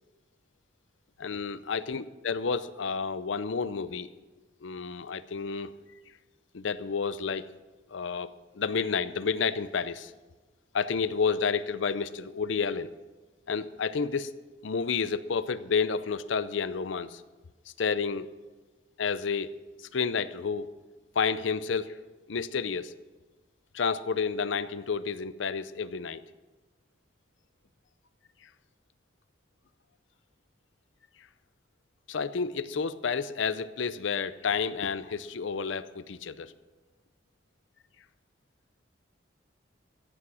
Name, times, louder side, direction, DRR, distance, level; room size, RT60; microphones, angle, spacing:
voice 1, 1.2-4.1 4.6-5.7 6.5-7.5 7.9-10.1 10.7-12.9 13.5-14.3 14.6-17.2 17.8-18.3 19.0-19.5 19.8-20.7 21.2-22.0 22.3-22.9 23.7-26.2 32.1-36.5, left 5 dB, 85° left, 15 dB, 0.6 m, -30 dB
14.5 x 8.6 x 6.2 m, 1.2 s
head